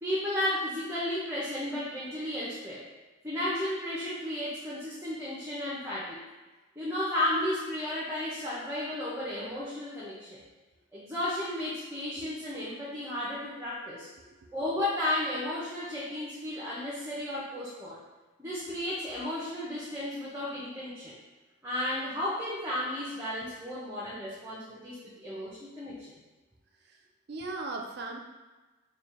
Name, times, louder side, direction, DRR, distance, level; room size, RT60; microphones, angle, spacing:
voice 1, 0.0-2.8 3.2-6.2 6.8-10.4 10.9-14.1 14.5-18.0 18.4-21.1 21.6-26.2, left 1 dB, 15° right, -8 dB, 0.7 m, -33 dB
voice 2, 14.2-14.5 26.9-27.0 27.3-28.2, right 3 dB, 55° right, 2 dB, 0.5 m, -38 dB
3.3 x 2.4 x 4.3 m, 1.2 s
head